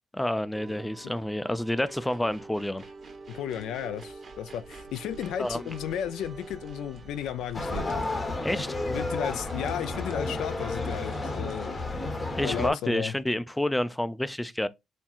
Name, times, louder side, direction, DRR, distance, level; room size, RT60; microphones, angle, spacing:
voice 1, 0.1-2.8 5.4-5.7 8.4-8.8 12.4-14.7, left 1 dB, 10° left, 0.4 m, -29 dB
sound 1, 0.5-9.8, right 3 dB, 40° right, 0.8 m, -47 dB
sound 2, 1.5-12.2, right 4 dB, 80° right, 1.0 m, -49 dB
voice 2, 3.3-7.9 8.9-11.9 12.4-13.1, left 10 dB, 85° left, 0.4 m, -34 dB
sound 3, 7.5-12.7, left 2 dB, 30° left, 0.8 m, -32 dB
4.3 x 3.5 x 2.3 m
cardioid pair, 90°, 0 cm